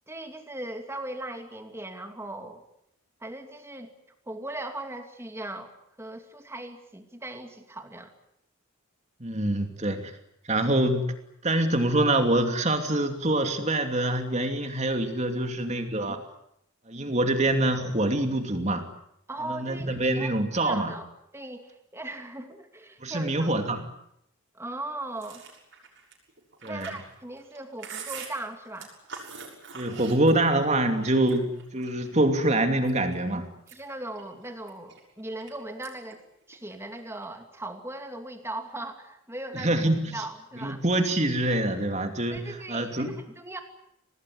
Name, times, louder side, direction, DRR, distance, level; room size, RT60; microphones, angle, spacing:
voice 1, 0.1-2.6 3.2-3.9 4.3-5.7 6.0-8.1 16.1-16.2 19.3-20.3 20.6-21.1 21.3-23.5 24.5-25.4 26.6-28.9 33.7-36.2 36.5-39.7 40.1-40.8 42.3-43.6, right 1 dB, 10° right, 6 dB, 2.6 m, -38 dB
voice 2, 9.2-10.1 10.5-11.1 11.4-16.2 16.9-18.9 19.4-20.9 23.0-23.9 26.6-26.9 29.7-33.5 39.5-40.2 40.6-43.2, right 1 dB, 35° right, 6 dB, 2.8 m, -25 dB
Chewing mastication, 25.2-30.7 31.0-32.1 32.6-33.2 33.5-35.5 35.8-36.2 36.4-37.3, right 6 dB, 60° right, 6.7 m, -43 dB
25.5 x 19.5 x 9.6 m, 0.77 s
head